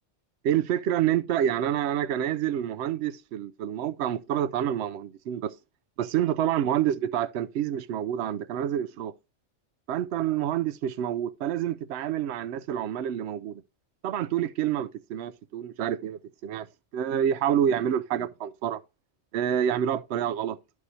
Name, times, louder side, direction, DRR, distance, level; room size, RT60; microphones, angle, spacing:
voice 1, 0.4-5.5 6.0-9.1 9.9-13.6 14.0-16.7 16.9-18.8 19.3-20.6, right 10 dB, 70° right, 0.8 m, -28 dB
12.5 x 4.8 x 2.7 m
omnidirectional pair, 1.3 m